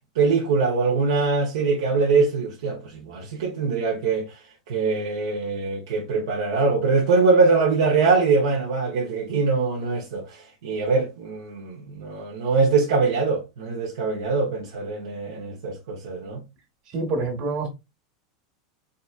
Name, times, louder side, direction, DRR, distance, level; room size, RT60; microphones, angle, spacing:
voice 1, 0.1-4.3 4.7-16.4, right 4 dB, 80° right, 1.0 m, -23 dB
voice 2, 16.9-17.7, right 3 dB, 50° right, 1.5 m, -26 dB
3.9 x 2.8 x 2.4 m
supercardioid pair, 120°, 2 cm